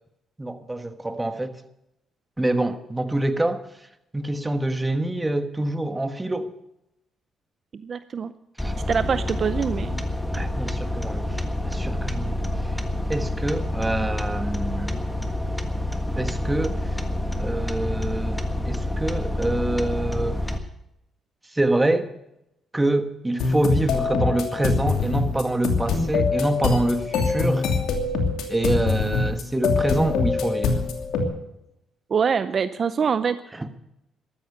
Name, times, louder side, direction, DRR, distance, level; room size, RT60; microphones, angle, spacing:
voice 1, 0.4-1.6 2.4-3.6 4.1-6.5 8.6-8.7 10.3-12.4 13.1-15.0 16.2-17.0 17.4-20.4 21.5-22.1 22.7-27.7 28.5-30.8 33.5-33.7, right 2 dB, 15° right, 1.4 m, -26 dB
voice 2, 7.7-8.3 8.9-10.0 32.1-33.4, right 6 dB, 45° right, 0.6 m, -24 dB
sound 1, 8.6-20.6, left 1 dB, 5° left, 1.6 m, -28 dB
sound 2, 23.4-31.2, left 4 dB, 85° left, 2.8 m, -24 dB
13.5 x 13.0 x 6.6 m
cardioid pair, 90°, 0 cm